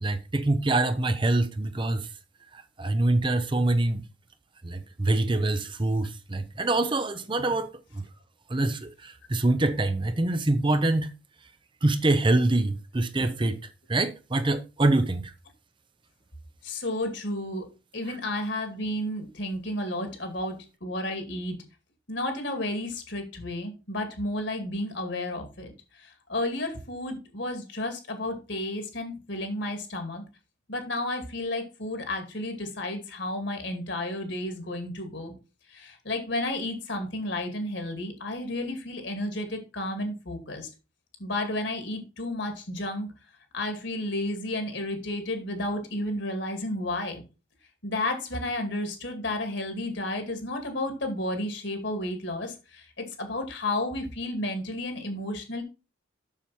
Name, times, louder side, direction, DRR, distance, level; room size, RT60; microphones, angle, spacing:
voice 1, 0.0-2.1 2.5-4.0 4.6-7.7 7.9-8.1 8.5-11.1 11.8-13.6 13.9-15.3, right 2 dB, 25° right, 0.6 m, -25 dB
voice 2, 16.6-17.6 17.9-20.5 20.8-21.6 22.1-25.7 26.0-30.2 30.7-35.3 35.7-40.7 41.2-43.1 43.5-47.2 47.8-55.6, left 1 dB, 65° left, 2.5 m, -32 dB
7.4 x 6.8 x 4.3 m
head